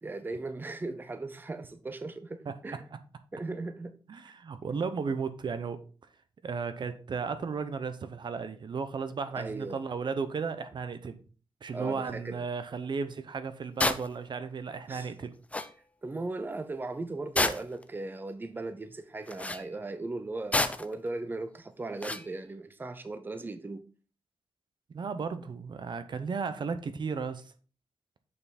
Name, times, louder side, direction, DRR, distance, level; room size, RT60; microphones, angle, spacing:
voice 1, 0.0-2.9 3.3-4.0 9.3-9.8 11.7-12.5 14.9-15.1 16.0-23.8, right 2 dB, 20° right, 0.6 m, -38 dB
voice 2, 4.1-5.8 6.4-11.2 11.6-15.4 24.9-27.4, right 5 dB, 60° right, 0.7 m, -34 dB
sound 1, 13.8-14.1 15.2-15.3 15.5-15.7 17.4-17.8 19.3-19.6 20.5-20.9 22.0-22.3, left 2 dB, 15° left, 0.6 m, -28 dB
6.8 x 5.5 x 4.1 m
wide cardioid pair, 115°, 9 cm